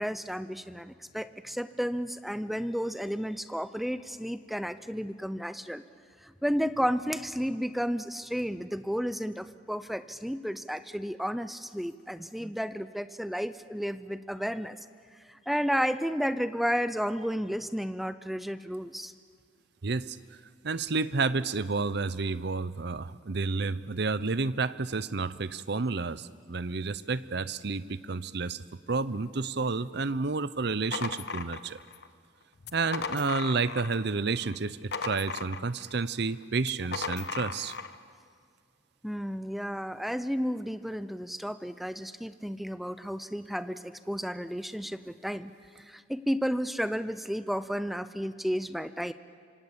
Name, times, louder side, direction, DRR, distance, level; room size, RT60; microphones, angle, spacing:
voice 1, 0.0-5.8 6.2-14.8 15.3-19.1 39.0-49.1, equal, ahead, 12 dB, 0.7 m, -32 dB
voice 2, 19.8-20.2 20.6-31.8 32.7-37.7, right 4 dB, 60° right, 16 dB, 0.8 m, -30 dB
sound 1, 30.9-32.1 32.6-34.1 34.4-35.9 36.6-38.0, left 4 dB, 55° left, 1.1 m, -37 dB
26.0 x 25.0 x 8.3 m, 2.1 s
head